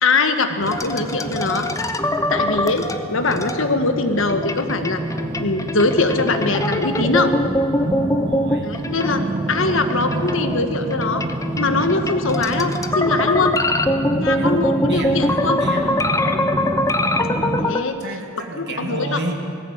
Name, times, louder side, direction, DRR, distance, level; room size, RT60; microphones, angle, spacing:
voice 1, 0.0-1.7 2.3-5.0 5.4-7.3 8.6-9.2 9.5-11.2 11.6-13.6 14.2-15.6 17.6-18.0 18.5-19.2, left 3 dB, 70° left, 8 dB, 1.5 m, -22 dB
sound 1, 0.6-17.7, right 2 dB, 25° right, 0.5 m, -28 dB
sound 2, 0.7-3.7 4.2-9.5 9.9-17.8, left 1 dB, 15° left, 0.9 m, -23 dB
voice 2, 8.1-8.9 14.3-14.6 14.9-16.0 18.0-19.4, right 2 dB, 55° right, 1 dB, 2.3 m, -31 dB
19.5 x 15.5 x 8.8 m, 2.4 s
head